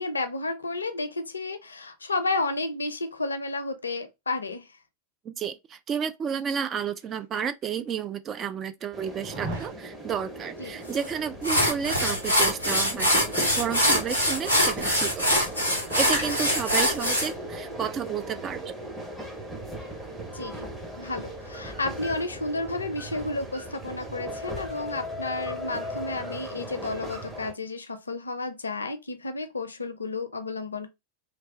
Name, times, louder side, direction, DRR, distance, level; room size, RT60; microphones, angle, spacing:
voice 1, 0.0-4.7 10.6-10.7 13.9-14.1 20.3-20.7 21.0-30.9, left 3 dB, 75° left, 0.5 m, -32 dB
voice 2, 5.2-15.5 16.0-18.7, right 7 dB, 25° right, 0.3 m, -31 dB
sound 1, 7.2-7.3 8.0-8.1 9.2-9.7 11.5-12.2 12.5-12.6, right 2 dB, 55° right, 1.3 m, -36 dB
sound 2, 8.9-27.5, equal, 10° right, 0.8 m, -38 dB
sound 3, 10.9-11.1 11.4-17.3, equal, 90° right, 0.9 m, -24 dB
3.2 x 2.0 x 2.7 m
figure-of-eight pair, 90°, 0 cm